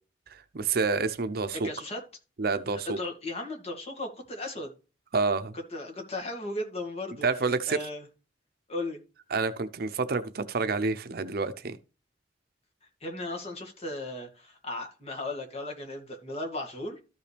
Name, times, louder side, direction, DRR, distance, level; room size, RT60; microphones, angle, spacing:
voice 1, 0.3-1.7 2.4-3.0 5.1-5.5 7.2-7.8 9.3-11.8, right 4 dB, 60° right, 0.7 m, -28 dB
voice 2, 1.5-2.0 2.7-4.7 5.7-7.3 7.7-8.0 8.7-9.0 13.0-17.0, left 2 dB, 35° left, 2.2 m, -36 dB
13.0 x 5.5 x 3.4 m
head